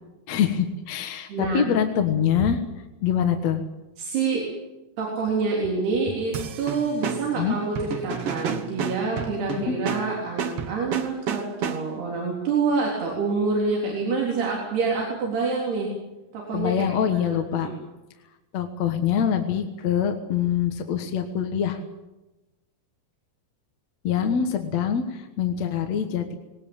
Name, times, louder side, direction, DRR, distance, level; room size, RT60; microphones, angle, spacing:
voice 1, 0.3-2.6 3.0-3.6 7.4-7.6 9.6-9.8 16.5-17.7 18.5-21.8 24.0-26.4, left 8 dB, 55° left, 6 dB, 2.1 m, -24 dB
voice 2, 1.3-1.7 4.0-4.5 5.0-15.9 16.3-17.7, right 4 dB, 85° right, -3 dB, 5.8 m, -27 dB
sound 1, 6.3-12.1, right 7 dB, 55° right, 1.6 m, -31 dB
21.0 x 18.5 x 8.9 m, 1.0 s
omnidirectional pair, 4.5 m